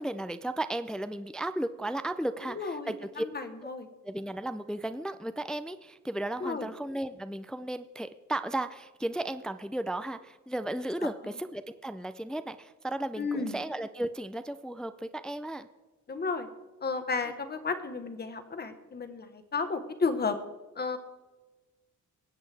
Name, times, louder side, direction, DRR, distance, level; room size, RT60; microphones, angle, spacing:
voice 1, 0.0-3.3 4.0-15.7, right 1 dB, ahead, 11 dB, 0.4 m, -35 dB
voice 2, 2.5-3.9 6.4-6.7 13.2-13.5 16.1-16.5 16.8-20.4 20.7-21.0, left 4 dB, 30° left, 8 dB, 1.3 m, -33 dB
21.0 x 8.2 x 3.4 m, 1.2 s
cardioid pair, 115°, 31 cm